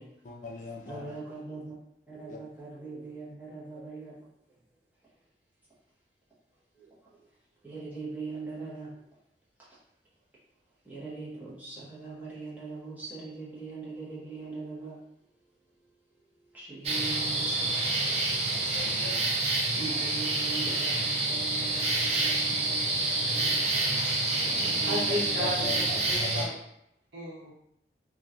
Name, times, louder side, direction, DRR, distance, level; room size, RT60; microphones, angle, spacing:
voice 1, 0.2-1.1 2.3-2.4 18.6-19.3 25.4-25.8 26.2-26.4, left 4 dB, 45° left, -1 dB, 0.4 m, -39 dB
voice 2, 0.9-1.7 2.1-4.2 6.8-6.9 7.6-8.9 10.8-15.0 16.5-18.0 19.8-23.6 24.4-25.8, right 3 dB, 10° right, -9 dB, 0.8 m, -41 dB
sound 1, 16.8-26.4, right 2 dB, 35° right, 0.4 m, -28 dB
voice 3, 24.6-26.5 27.1-27.5, left 1 dB, 85° right, -5 dB, 1.0 m, -34 dB
3.0 x 2.2 x 2.5 m, 0.78 s
head